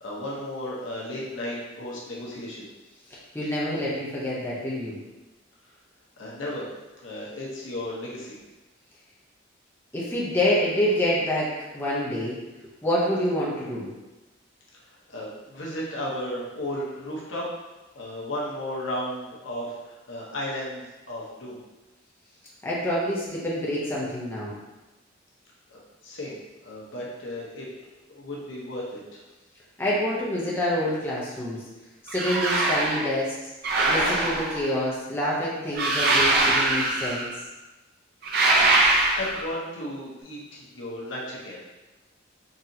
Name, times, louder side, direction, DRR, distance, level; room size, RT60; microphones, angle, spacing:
voice 1, 0.0-2.7 6.2-6.6 7.0-8.4 14.8-17.5 17.9-21.6 25.7-27.7 28.1-29.2 39.1-41.6, left 1 dB, 75° left, -5 dB, 0.9 m, -34 dB
voice 2, 3.3-4.9 9.9-12.4 12.8-13.9 22.6-24.5 29.8-31.6 32.0-33.5 33.9-37.3, equal, 10° left, -7 dB, 0.7 m, -27 dB
sound 1, 32.1-33.0 33.6-34.7 35.7-37.3 38.2-39.5, right 2 dB, 50° right, 0.6 m, -22 dB
3.9 x 2.9 x 2.7 m, 1.1 s
head